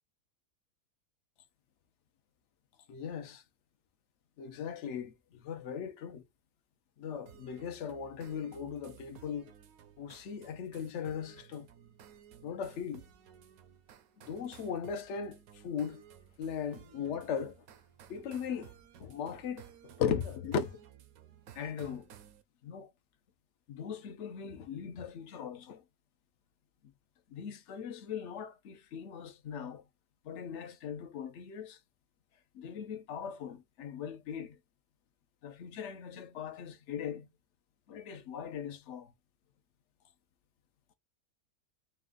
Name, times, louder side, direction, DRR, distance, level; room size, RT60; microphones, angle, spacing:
voice 1, 2.9-3.4 4.4-6.2 7.0-9.5 10.0-11.7 12.4-13.0 14.2-16.0 16.4-17.7 18.1-18.7 19.0-20.8 21.5-22.1 22.6-22.9 23.7-25.8 27.3-29.8 30.2-31.8 32.5-34.6 35.4-37.3 37.9-39.1, left 7 dB, 55° left, 1.0 m, -39 dB
sound 1, 7.3-22.4, right 9 dB, 70° right, 1.1 m, -56 dB
4.2 x 2.4 x 3.8 m
omnidirectional pair, 1.6 m